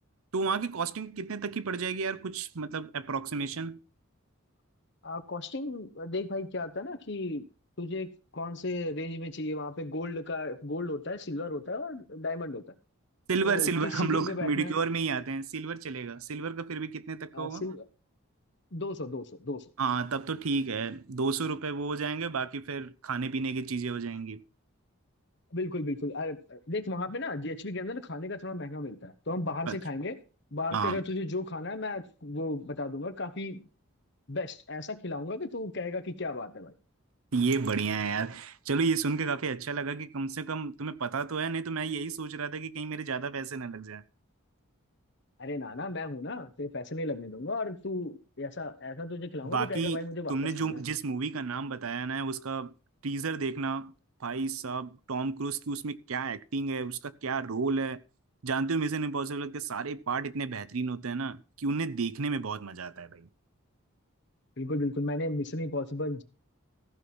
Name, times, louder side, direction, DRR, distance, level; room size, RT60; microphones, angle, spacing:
voice 1, 0.3-3.8 13.3-17.6 19.8-24.4 29.7-29.8 30.7-31.0 37.3-44.0 49.4-50.0 50.3-52.7 53.0-53.9 54.2-58.0 58.4-63.3, right 4 dB, 75° right, 0.7 m, -31 dB
voice 2, 5.0-7.5 7.8-12.6 13.4-14.8 17.3-17.8 18.7-19.6 25.5-30.2 30.5-33.6 34.3-36.7 45.4-50.8 64.6-66.2, left 2 dB, 50° left, 1.1 m, -35 dB
14.5 x 5.6 x 6.0 m
head